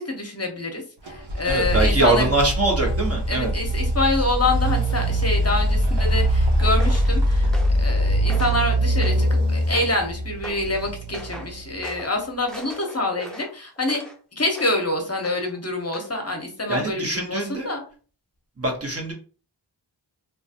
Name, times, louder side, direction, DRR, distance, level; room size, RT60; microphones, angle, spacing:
voice 1, 0.0-2.3 3.3-7.5 7.8-14.0 14.3-17.8, left 2 dB, 35° left, 3 dB, 0.8 m, -26 dB
sound 1, 1.1-11.9, equal, 75° right, 0.8 m, -22 dB
voice 2, 1.4-3.5 16.7-17.7 18.6-19.1, right 2 dB, 35° right, 0 dB, 1.0 m, -23 dB
sound 2, 6.8-7.1 7.5-7.9 8.3-8.6 9.0-9.4 9.7-10.1 10.4-10.7 11.1-11.5 11.8-12.1 12.5-14.2 14.5-14.8 15.2-15.6 15.9-16.1, equal, ahead, 0.6 m, -39 dB
3.1 x 2.4 x 2.7 m, 0.38 s
wide cardioid pair, 50°, 43 cm